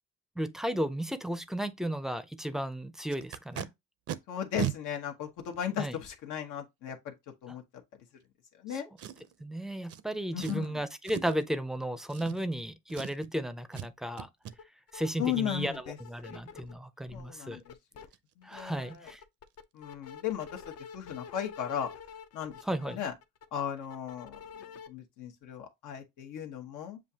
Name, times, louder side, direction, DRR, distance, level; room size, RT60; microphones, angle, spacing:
voice 1, 0.4-3.7 5.8-6.0 8.7-8.8 9.4-14.3 14.9-17.6 18.4-19.2 22.6-23.0, right 1 dB, ahead, 0.5 m, -34 dB
Packing tape duct tape, 3.1-3.7 4.1-4.2 4.6-4.8 5.5-5.6 9.0-9.4 9.9-10.0 10.4-10.7 11.0-11.4 12.1-12.6 12.9-13.3 13.7-13.9 14.2-14.5 17.6-17.7 18.0-18.2 18.5-18.7 18.9-19.2 19.5-19.6, right 11 dB, 50° right, 0.5 m, -37 dB
voice 2, 4.3-7.1 7.4-7.6 8.6-8.9 10.3-10.7 15.2-16.0 16.3-16.4 17.1-17.7 18.4-18.9 19.7-20.6 20.9-21.9 22.3-22.5 22.8-23.1 23.5-24.4 24.9-27.0, left 9 dB, 80° left, 1.1 m, -36 dB
sound 1, 14.5-14.6 14.9-16.7 17.1-18.1 18.4-24.9, left 6 dB, 55° left, 0.6 m, -48 dB
7.3 x 2.5 x 2.8 m
cardioid pair, 100°, 30 cm